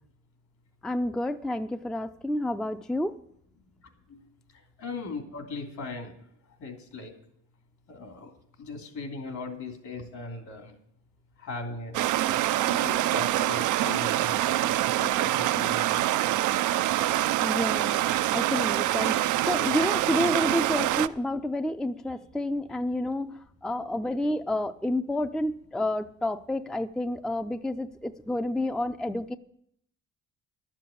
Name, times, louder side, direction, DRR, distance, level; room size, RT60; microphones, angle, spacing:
voice 1, 0.8-3.2 17.4-18.0 18.3-29.4, left 1 dB, ahead, 9 dB, 0.4 m, -29 dB
voice 2, 4.8-6.1 6.6-7.1 7.9-8.3 8.6-10.7 11.4-12.0 12.7-16.4 23.8-23.9, left 3 dB, 70° left, 4 dB, 2.9 m, -39 dB
Stream, 11.9-21.1, right 14 dB, 85° right, 0.5 m, -25 dB
11.5 x 7.4 x 8.4 m, 0.72 s
cardioid pair, 90°, 30 cm